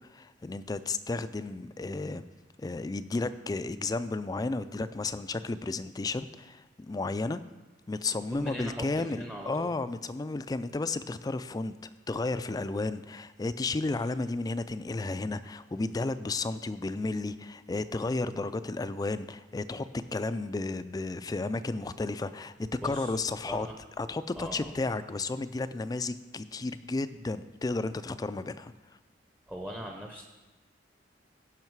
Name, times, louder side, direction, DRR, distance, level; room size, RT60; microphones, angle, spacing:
voice 1, 0.1-2.2 2.6-7.4 7.9-11.7 12.1-22.5 22.8-23.7 24.0-28.7, left 3 dB, 20° left, 13 dB, 0.3 m, -33 dB
voice 2, 8.3-9.7 22.8-23.2 23.4-23.8 24.4-24.7 29.5-30.2, equal, 10° right, 1 dB, 0.7 m, -40 dB
16.0 x 5.6 x 4.6 m, 1.1 s
head